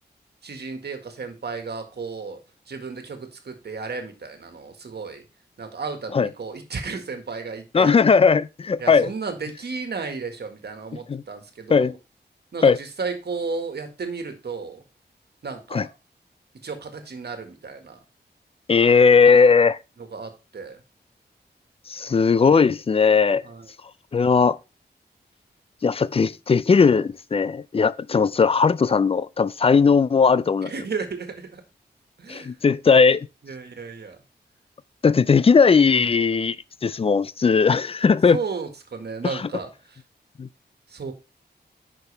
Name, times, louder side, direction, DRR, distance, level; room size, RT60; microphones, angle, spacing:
voice 1, 0.4-2.4 2.7-5.2 5.6-8.1 8.8-11.9 12.5-14.8 15.4-15.9 16.6-18.0 20.1-20.8 23.4-23.7 30.6-31.6 32.2-32.5 33.4-34.2 38.3-40.0 40.9-41.1, right 4 dB, 65° right, 1.8 m, -33 dB
voice 2, 7.7-9.1 11.1-11.2 11.7-11.9 12.6-12.8 15.7-15.9 18.7-19.8 21.9-23.4 24.1-24.6 25.8-30.7 32.3-33.3 35.0-36.6 36.8-38.4 39.2-39.5 40.4-40.5, left 5 dB, 35° left, 0.4 m, -18 dB
9.4 x 6.1 x 3.4 m
wide cardioid pair, 100°, 18 cm